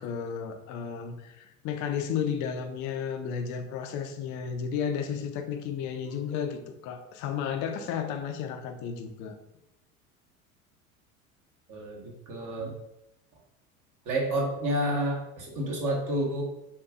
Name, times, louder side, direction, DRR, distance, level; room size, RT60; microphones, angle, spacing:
voice 1, 0.0-9.3, left 7 dB, 40° left, 6 dB, 0.7 m, -33 dB
voice 2, 11.7-12.7 14.0-16.4, right 1 dB, 45° right, -2 dB, 1.4 m, -30 dB
7.0 x 2.6 x 2.5 m, 0.88 s
figure-of-eight pair, 75°, 44 cm